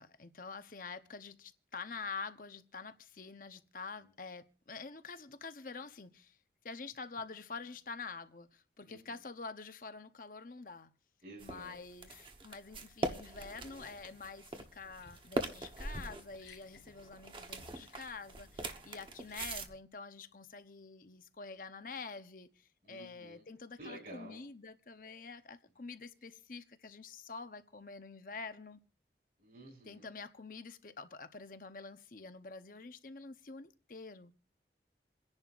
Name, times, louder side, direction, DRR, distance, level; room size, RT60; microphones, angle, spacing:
voice 1, 0.0-6.4 6.6-10.9 11.4-28.8 29.9-34.3, left 4 dB, 50° left, 0.8 m, -47 dB
voice 2, 8.8-9.1 11.2-11.7 22.8-23.4 23.8-24.4 29.4-30.1, right 1 dB, 55° right, 4.1 m, -51 dB
sound 1, 11.4-19.7, right 1 dB, 30° right, 1.0 m, -42 dB
Liquid, 13.6-19.7, left 2 dB, 75° left, 1.8 m, -60 dB
28.5 x 10.5 x 2.5 m
head